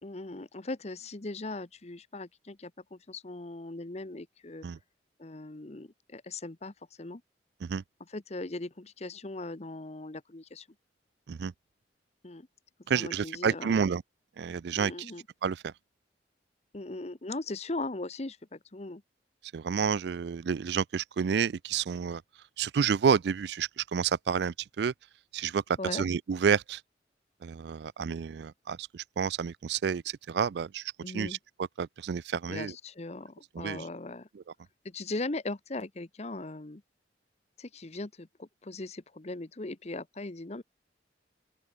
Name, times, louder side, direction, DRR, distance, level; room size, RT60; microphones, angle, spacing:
voice 1, 0.0-4.7 5.2-7.2 8.1-10.7 12.2-12.5 12.9-13.8 14.7-15.2 16.7-19.0 25.8-26.0 31.0-31.4 32.5-34.3 34.8-36.8 37.6-40.6, left 2 dB, 35° left, 1.0 m, -39 dB
voice 2, 12.9-14.0 14.4-15.1 15.4-15.7 19.5-22.2 22.6-24.9 25.3-26.8 27.4-31.4 31.8-32.7 33.5-33.8, right 6 dB, 65° right, 0.4 m, -30 dB
open air
head